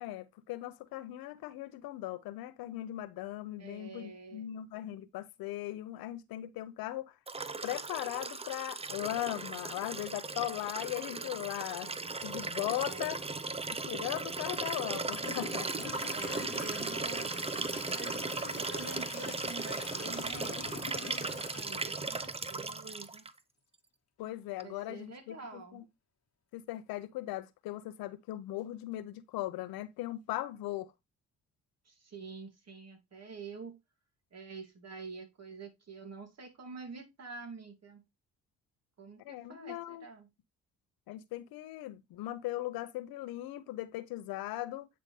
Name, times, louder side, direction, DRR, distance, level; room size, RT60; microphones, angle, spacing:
voice 1, 0.0-7.1 7.6-13.2 13.7-15.9 16.3-16.5 24.2-25.8 26.5-30.9 39.2-40.0 41.1-44.9, left 15 dB, 75° left, 0.8 m, -39 dB
voice 2, 3.6-4.5 12.9-13.7 16.1-18.2 18.6-23.2 24.6-25.8 31.9-33.8 34.3-38.0 39.0-40.3, right 4 dB, 45° right, 2.6 m, -47 dB
Liquid, 7.3-23.3 24.6-24.7, right 3 dB, 15° right, 0.6 m, -37 dB
Toilet flush / Trickle dribble, 14.4-14.5 15.1-22.9, left 7 dB, 45° left, 1.3 m, -46 dB
9.3 x 3.9 x 3.2 m
hypercardioid pair, 50°, 36 cm